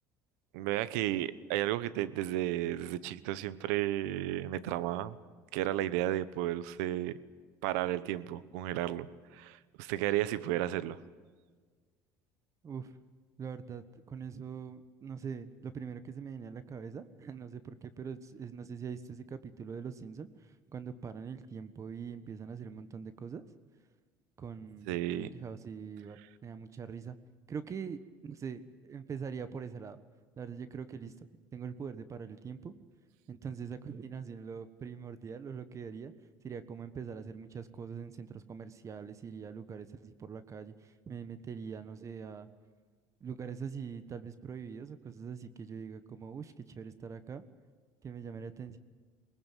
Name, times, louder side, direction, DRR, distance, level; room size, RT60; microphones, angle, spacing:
voice 1, 0.5-5.2 5.5-7.2 7.6-9.1 9.3-11.0 24.9-25.3, right 14 dB, 85° right, 17 dB, 1.0 m, -33 dB
voice 2, 12.6-13.0 13.4-23.4 24.4-27.2 27.5-30.0 30.4-31.1 31.5-32.7 33.3-36.1 36.4-42.5 43.2-47.4 48.0-48.8, right 6 dB, 35° right, 13 dB, 1.3 m, -43 dB
22.0 x 19.5 x 9.2 m, 1.5 s
supercardioid pair, 90°, 9 cm